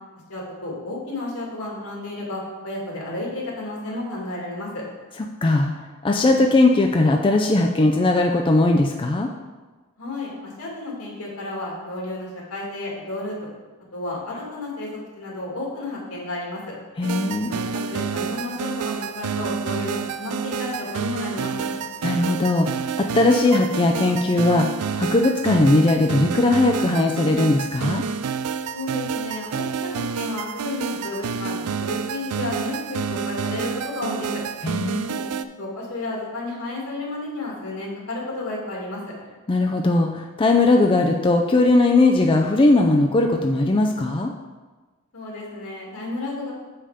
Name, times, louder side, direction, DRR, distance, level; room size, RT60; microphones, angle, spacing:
voice 1, 0.3-4.8 10.0-13.4 13.9-14.9 15.2-16.7 17.4-21.7 28.7-34.4 35.0-35.3 35.6-39.1 45.1-46.5, left 2 dB, 75° left, -3 dB, 2.4 m, -32 dB
voice 2, 5.4-9.3 17.0-17.5 22.0-28.0 34.6-35.1 39.5-44.3, left 2 dB, 25° left, 2 dB, 0.4 m, -19 dB
sound 1, 17.0-35.4, right 6 dB, 85° right, 0.4 m, -29 dB
6.8 x 5.6 x 5.0 m, 1.3 s
head